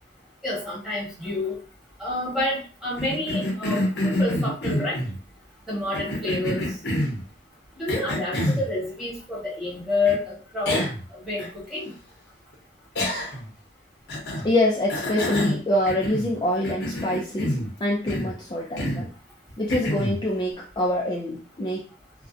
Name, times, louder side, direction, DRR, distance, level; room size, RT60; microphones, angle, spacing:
voice 1, 0.4-1.6 2.0-5.0 5.7-6.7 7.8-10.8 11.1-11.9, left 2 dB, ahead, -6 dB, 1.1 m, -28 dB
Cough, 3.0-5.2 5.9-7.2 7.9-8.7 10.1-10.2 10.7-11.0 11.4-11.5 13.0-13.5 14.1-14.5 14.9-16.3 16.6-17.7 18.1-18.4 18.8-19.1 19.7-20.2, left 1 dB, 80° left, 0.8 m, -27 dB
voice 2, 14.4-19.1 19.6-21.9, left 1 dB, 25° left, -3 dB, 0.3 m, -25 dB
2.4 x 2.1 x 2.5 m, 0.37 s
head